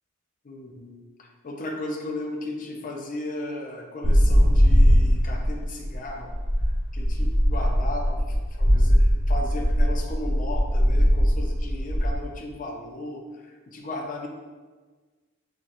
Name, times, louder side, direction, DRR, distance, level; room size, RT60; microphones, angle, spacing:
voice 1, 0.4-6.3 6.9-14.3, left 1 dB, 35° left, 1 dB, 0.5 m, -36 dB
sound 1, 4.0-12.2, equal, 10° left, 1.0 m, -20 dB
5.5 x 2.2 x 2.5 m, 1.4 s
head